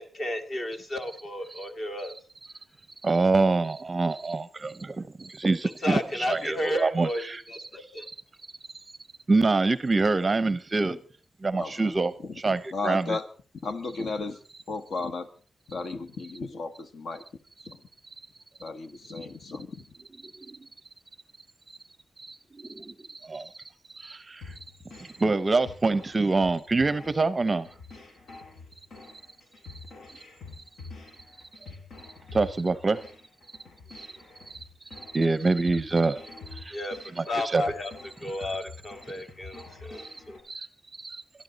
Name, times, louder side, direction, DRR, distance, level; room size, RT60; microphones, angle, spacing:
voice 1, 0.0-2.1 5.8-8.1 36.7-37.0 37.3-37.9 38.2-40.4, left 1 dB, 35° left, 8 dB, 1.7 m, -33 dB
voice 2, 3.0-6.0 6.3-7.4 9.3-11.0 11.4-13.2 20.3-20.6 22.2-23.5 23.9-24.5 25.0-27.7 32.3-33.0 33.9-34.1 34.5-34.6 34.9-36.2 36.5-36.8 37.5-37.6 40.0-40.1 40.4-40.7 41.0-41.2, right 3 dB, 25° right, 15 dB, 0.7 m, -26 dB
voice 3, 11.5-11.9 12.2-13.3 13.6-14.4 14.7-15.3 15.7-17.2 17.6-17.8 18.6-19.8, left 3 dB, 60° left, 10 dB, 1.5 m, -34 dB
sound 1, 24.4-40.4, left 4 dB, 80° left, 4.1 m, -47 dB
22.5 x 12.5 x 4.0 m, 0.38 s
wide cardioid pair, 175°, 0 cm